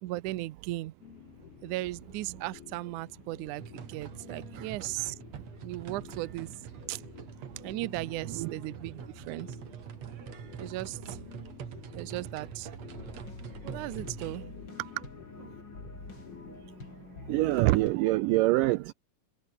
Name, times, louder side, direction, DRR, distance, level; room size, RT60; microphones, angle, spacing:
voice 1, 0.0-0.9 1.6-5.2 5.6-7.0 7.6-9.5 10.6-11.2 12.0-12.7 13.6-14.4 14.8-15.0, right 18 dB, 70° right, 2.0 m, -37 dB
sound 1, 1.0-16.8, left 8 dB, 75° left, 4.7 m, -51 dB
sound 2, 3.6-14.4, right 8 dB, 50° right, 2.9 m, -45 dB
sound 3, 12.9-18.0, left 3 dB, 30° left, 5.1 m, -46 dB
voice 2, 17.3-18.9, right 19 dB, 85° right, 1.9 m, -26 dB
omnidirectional pair, 4.4 m